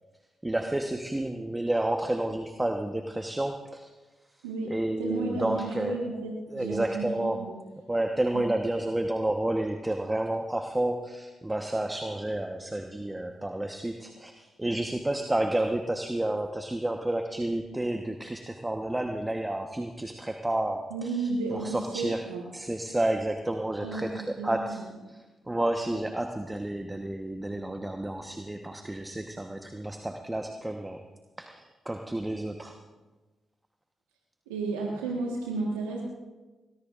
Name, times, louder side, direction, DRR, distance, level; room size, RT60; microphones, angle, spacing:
voice 1, 0.4-3.9 4.7-6.0 6.5-7.4 7.9-21.2 21.5-22.2 22.5-24.8 25.5-31.0 31.4-32.7, right 1 dB, 15° right, 4 dB, 1.1 m, -30 dB
voice 2, 4.4-7.6 8.3-8.5 20.9-22.4 23.8-24.8 34.5-36.0, right 3 dB, 90° right, -2 dB, 1.5 m, -33 dB
21.5 x 20.0 x 2.5 m, 1.2 s
hypercardioid pair, 40°, 0 cm